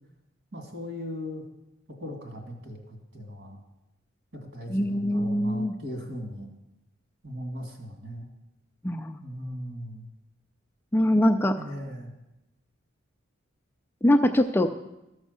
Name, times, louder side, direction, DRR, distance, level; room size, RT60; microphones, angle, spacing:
voice 1, 0.5-1.4 2.0-3.6 4.5-6.5 7.2-8.3 9.2-10.1 11.5-12.1, equal, 60° right, 2 dB, 2.4 m, -38 dB
voice 2, 4.7-5.7 8.8-9.2 10.9-11.6 14.0-14.7, left 1 dB, 10° left, 6 dB, 0.3 m, -23 dB
13.5 x 6.3 x 6.7 m, 0.95 s
head